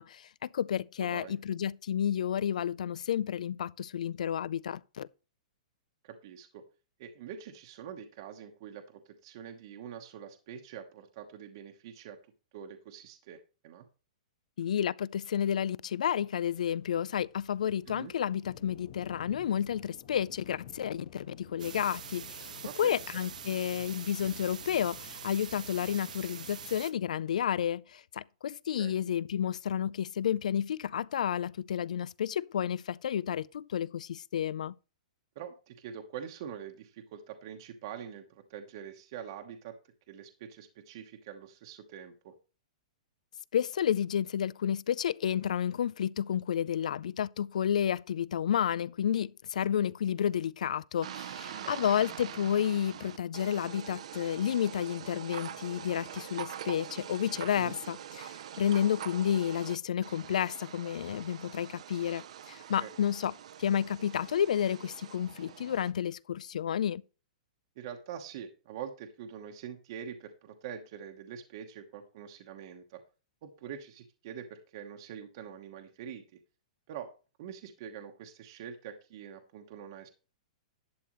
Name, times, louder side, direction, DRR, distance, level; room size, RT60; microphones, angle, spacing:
voice 1, 0.0-5.1 14.6-22.5 22.8-34.7 43.5-63.3 63.6-67.0, left 9 dB, 75° left, 0.4 m, -31 dB
voice 2, 1.0-1.4 6.0-6.6 7.0-12.2 12.5-13.4 13.6-13.8 17.9-18.1 22.6-23.0 28.8-28.9 35.3-39.7 40.1-42.3 51.5-52.0 57.6-57.7 62.7-62.9 67.8-73.0 73.4-76.4 76.9-77.1 77.4-80.1, right 8 dB, 35° right, 1.1 m, -45 dB
sound 1, 16.1-26.8, left 7 dB, 45° left, 1.7 m, -53 dB
sound 2, 21.6-26.9, right 8 dB, 85° right, 0.9 m, -45 dB
sound 3, 51.0-59.8 60.0-65.9, right 10 dB, 55° right, 0.6 m, -44 dB
11.5 x 8.4 x 3.1 m
hypercardioid pair, 175°, 4 cm